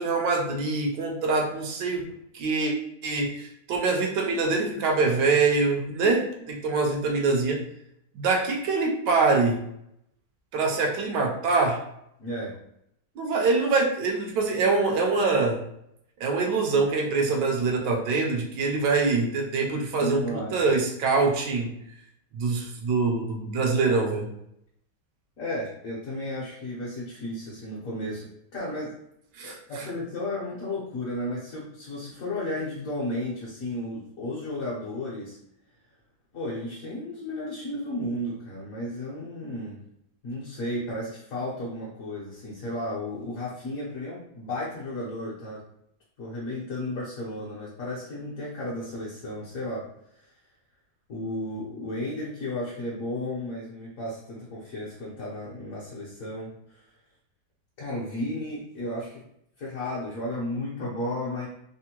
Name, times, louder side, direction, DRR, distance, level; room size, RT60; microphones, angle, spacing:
voice 1, 0.0-2.0 2.3-2.7 3.0-6.2 6.6-7.6 8.1-9.6 10.5-11.8 13.2-15.6 16.2-21.7 22.3-24.3 29.4-29.9, right 3 dB, 75° right, 0 dB, 1.2 m, -24 dB
voice 2, 12.2-12.5 20.0-20.6 25.4-28.9 29.4-35.4 36.3-39.8 40.2-45.6 46.2-49.9 50.2-50.3 51.1-56.8 57.8-59.2 59.6-61.5, left 1 dB, 60° left, -6 dB, 1.0 m, -33 dB
3.5 x 2.1 x 2.8 m, 0.76 s
omnidirectional pair, 2.0 m